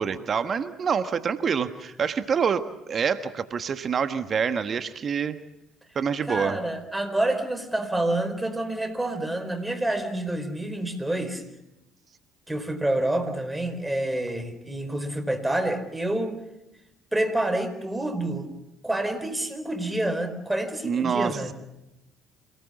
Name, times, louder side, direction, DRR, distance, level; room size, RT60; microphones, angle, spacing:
voice 1, 0.0-5.4 5.9-6.6 20.8-21.5, right 6 dB, 45° right, 10 dB, 1.4 m, -26 dB
voice 2, 6.3-11.4 12.5-16.4 17.1-18.5 18.8-21.5, right 1 dB, 10° right, 7 dB, 4.5 m, -28 dB
27.5 x 19.0 x 7.2 m, 0.89 s
hypercardioid pair, 55°, 0 cm